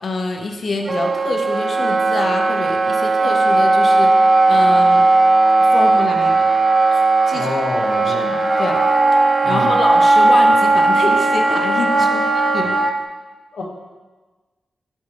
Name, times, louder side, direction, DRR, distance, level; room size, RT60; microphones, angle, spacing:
voice 1, 0.0-5.0 5.6-6.5 6.9-7.0 7.3-7.5 8.0-8.8 9.2-12.8, left 3 dB, 45° left, 3 dB, 0.6 m, -26 dB
Wind instrument woodwind instrument, 0.9-12.9, right 2 dB, 30° right, 0.3 m, -16 dB
voice 2, 7.3-8.3 9.4-9.8 13.5-13.6, left 2 dB, 85° left, -2 dB, 0.8 m, -27 dB
7.5 x 3.1 x 4.3 m, 1.3 s
wide cardioid pair, 150°, 0 cm